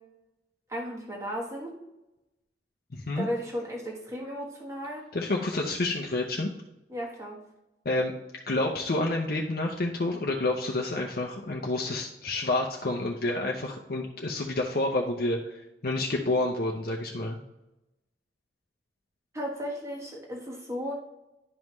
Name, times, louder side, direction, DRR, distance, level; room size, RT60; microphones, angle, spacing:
voice 1, 0.7-1.7 3.2-5.0 6.9-7.4 19.3-20.9, equal, 15° right, -1 dB, 1.4 m, -35 dB
voice 2, 2.9-3.2 5.1-6.5 7.8-8.1 8.5-15.6 15.8-17.4, left 2 dB, 55° left, 0 dB, 0.7 m, -29 dB
10.5 x 5.4 x 3.1 m, 0.94 s
head